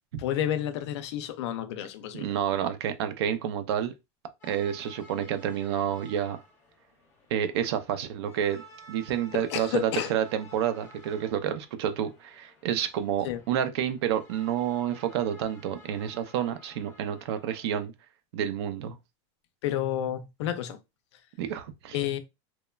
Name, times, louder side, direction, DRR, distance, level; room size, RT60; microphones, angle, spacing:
voice 1, 0.2-2.3 9.3-10.1 13.2-13.4 19.6-20.8 21.9-22.2, left 11 dB, 70° left, 0.4 m, -30 dB
voice 2, 2.1-3.9 4.4-6.4 7.3-8.6 8.9-17.9 18.3-19.0 21.4-22.0, right 9 dB, 65° right, 0.5 m, -29 dB
sound 1, 4.4-17.6, equal, 15° left, 0.6 m, -53 dB
3.0 x 2.1 x 2.2 m
supercardioid pair, 180°, 15 cm